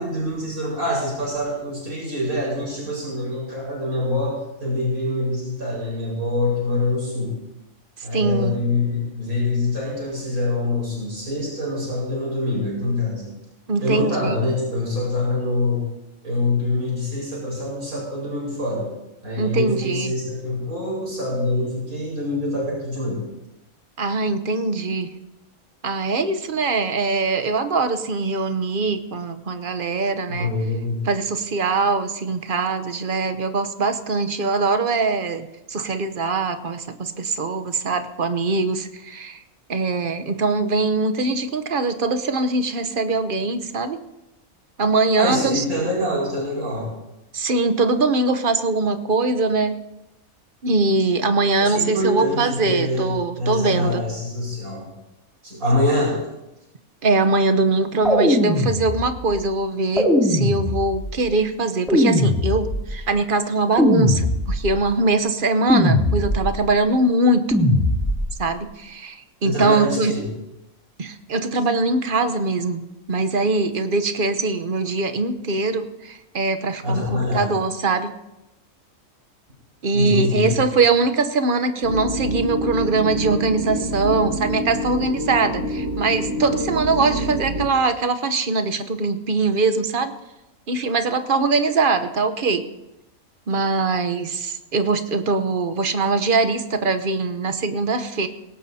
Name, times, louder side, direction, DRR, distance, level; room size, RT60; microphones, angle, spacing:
voice 1, 0.0-7.3 8.0-13.3 13.8-15.9 16.2-18.9 19.2-23.2 30.3-31.0 45.2-46.9 51.6-54.9 55.4-56.2 69.4-70.3 76.8-77.5 79.9-80.5, left 2 dB, 80° right, -4 dB, 5.4 m, -25 dB
voice 2, 8.1-8.5 13.7-14.4 19.4-20.2 24.0-25.1 25.8-30.5 31.0-39.4 39.7-44.0 44.8-45.6 47.3-49.8 50.6-54.0 57.0-67.6 68.4-70.1 71.0-72.8 73.1-78.1 79.8-90.1 90.7-92.6 93.5-98.3, right 3 dB, 45° right, 9 dB, 1.0 m, -22 dB
sound 1, 58.0-59.3 60.0-61.1 61.9-63.0 63.8-64.8 65.7-66.6 67.5-68.4, left 1 dB, ahead, 2.6 m, -20 dB
sound 2, 81.8-87.7, equal, 65° right, 1.8 m, -27 dB
19.0 x 17.0 x 2.8 m, 0.93 s
omnidirectional pair, 1.5 m